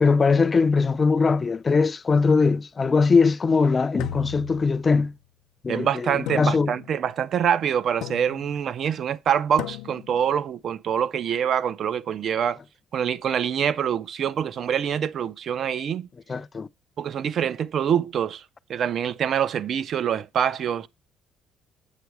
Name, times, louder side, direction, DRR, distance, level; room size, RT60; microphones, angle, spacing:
voice 1, 0.0-5.1 5.6-6.7 16.3-16.7, left 4 dB, 25° left, 0.4 m, -21 dB
sound 1, 4.0-5.2 6.3-7.1 8.0-8.6 9.6-10.2, left 13 dB, 90° left, 0.5 m, -36 dB
voice 2, 5.7-12.6 12.9-16.1 17.0-18.4 18.7-20.9, right 8 dB, 50° right, 0.5 m, -25 dB
8.2 x 6.1 x 4.6 m
cardioid pair, 130°, 0 cm